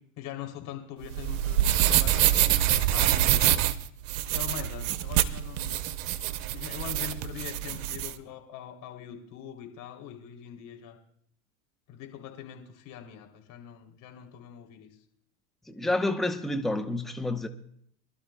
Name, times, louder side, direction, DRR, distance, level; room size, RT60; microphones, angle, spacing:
voice 1, 0.2-2.3 2.9-3.8 4.3-5.8 6.5-11.0 11.9-14.9, left 9 dB, 50° left, 3.2 m, -42 dB
sound 1, 1.0-8.1, right 12 dB, 70° right, 0.8 m, -25 dB
voice 2, 15.7-17.5, left 2 dB, ahead, 0.7 m, -29 dB
24.0 x 12.5 x 2.3 m
hypercardioid pair, 95°, 40 cm